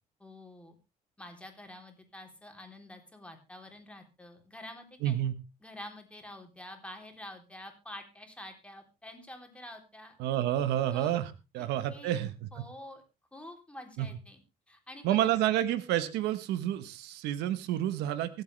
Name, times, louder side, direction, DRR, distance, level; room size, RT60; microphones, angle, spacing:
voice 1, 0.2-0.8 1.2-5.2 5.6-10.2 10.9-11.1 11.6-12.2 12.5-13.0 13.3-14.4 14.7-15.4, left 1 dB, 5° left, 3 dB, 3.5 m, -48 dB
voice 2, 5.0-5.4 10.2-12.7 14.0-14.1 15.0-18.4, right 12 dB, 90° right, 13 dB, 1.2 m, -29 dB
24.0 x 8.0 x 3.3 m, 0.27 s
cardioid pair, 110°, 17 cm